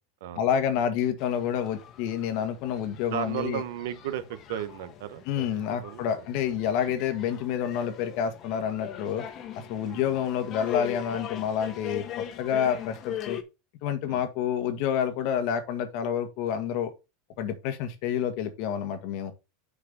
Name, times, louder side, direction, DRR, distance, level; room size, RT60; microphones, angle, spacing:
voice 1, 0.4-3.6 5.3-9.2 9.7-12.0 12.4-13.4 13.8-16.9 17.4-19.3, left 8 dB, 60° left, 1.6 m, -28 dB
sound 1, 1.2-13.4, left 10 dB, 40° left, 1.2 m, -41 dB
voice 2, 3.1-6.2 6.9-7.0 9.8-10.2 14.0-14.2, right 11 dB, 75° right, 1.0 m, -35 dB
6.2 x 4.8 x 5.3 m
supercardioid pair, 130°, 0 cm